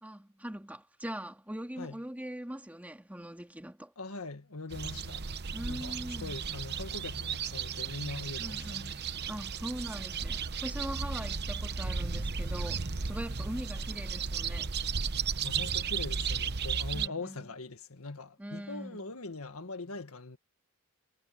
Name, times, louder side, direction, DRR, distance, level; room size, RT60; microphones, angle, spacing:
voice 1, 0.0-3.9 5.5-6.4 8.4-9.0 9.3-14.7 16.9-17.5 18.4-19.1, right 1 dB, 5° right, 2.1 m, -41 dB
voice 2, 4.0-5.2 5.7-9.0 15.4-20.4, left 3 dB, 75° left, 1.8 m, -42 dB
sound 1, 4.7-17.1, right 5 dB, 50° right, 0.9 m, -34 dB
head